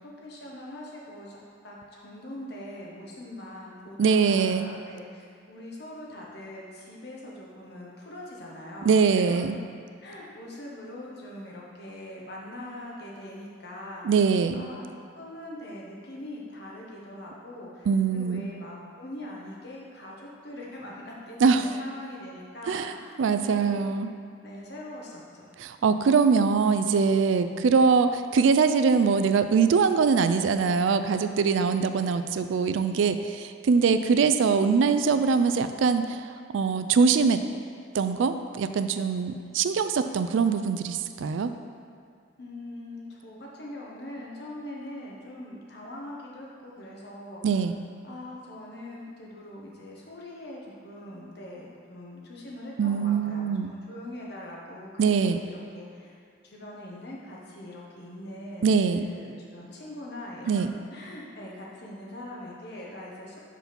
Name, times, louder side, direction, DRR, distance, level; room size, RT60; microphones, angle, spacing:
voice 1, 0.0-1.4 1.6-9.6 10.0-14.1 14.5-14.8 15.2-24.1 24.4-25.5 42.4-47.4 48.0-56.2 56.4-60.6 60.9-63.4, left 1 dB, 55° left, -3 dB, 1.2 m, -42 dB
voice 2, 4.0-4.7 8.8-9.5 14.0-14.6 17.9-18.4 21.4-21.6 22.7-22.9 23.2-24.1 25.6-37.4 37.9-41.5 47.4-47.7 52.8-53.7 55.0-55.4 58.6-59.1 60.5-60.7, right 5 dB, 75° right, 9 dB, 0.3 m, -23 dB
6.0 x 4.7 x 5.2 m, 2.3 s
head